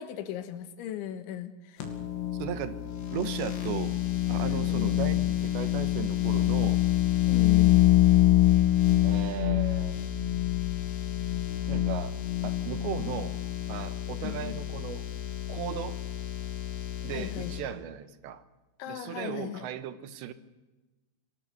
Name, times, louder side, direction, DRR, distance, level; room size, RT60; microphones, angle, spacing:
voice 1, 0.0-1.9 4.4-5.0 7.3-7.8 14.2-14.6 17.1-17.5 18.8-19.7, left 11 dB, 85° left, 10 dB, 3.7 m, -37 dB
sound 1, 1.8-17.6, left 13 dB, 70° left, 4.6 m, -26 dB
voice 2, 2.4-2.8 3.1-4.0 4.3-6.8 9.0-10.0 11.7-12.2 12.4-13.4 13.7-15.0 15.5-16.0 17.0-18.4 18.9-20.3, right 10 dB, 80° right, 12 dB, 3.2 m, -36 dB
25.5 x 18.5 x 6.7 m, 1.1 s
omnidirectional pair, 5.3 m